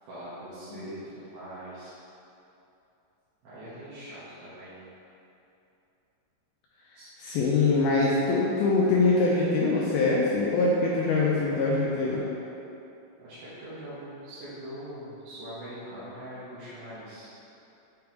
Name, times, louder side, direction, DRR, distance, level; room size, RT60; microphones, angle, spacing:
voice 1, 0.0-1.9 3.4-4.8 6.9-7.1 13.2-17.3, right 1 dB, 65° right, -13 dB, 2.8 m, -42 dB
voice 2, 7.2-12.2, left 3 dB, 85° left, -4 dB, 2.2 m, -23 dB
7.5 x 3.5 x 4.6 m, 2.9 s
omnidirectional pair, 5.0 m